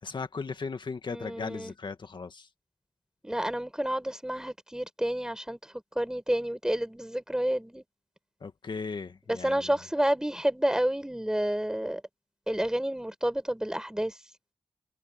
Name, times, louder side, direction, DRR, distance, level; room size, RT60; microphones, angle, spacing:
voice 1, 0.0-2.5 8.4-9.7, left 4 dB, 50° left, 1.9 m, -37 dB
voice 2, 1.1-1.7 3.2-7.8 9.3-12.0 12.5-14.2, right 1 dB, 5° right, 4.6 m, -30 dB
cardioid pair, 75°, 10 cm